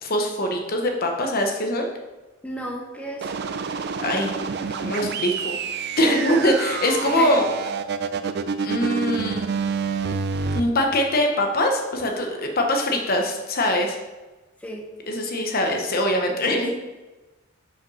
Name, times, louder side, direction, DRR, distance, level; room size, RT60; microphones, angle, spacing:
voice 1, 0.0-1.9 4.0-4.3 4.8-5.6 6.0-7.4 8.6-9.4 10.5-14.0 15.1-16.7, left 1 dB, 45° left, 3 dB, 0.8 m, -23 dB
voice 2, 2.4-3.3 7.0-7.4 14.6-14.8 16.6-16.7, equal, 5° left, -1 dB, 1.0 m, -32 dB
sound 1, 3.2-10.6, right 5 dB, 50° right, 0.4 m, -28 dB
5.8 x 5.0 x 5.5 m, 1.2 s
head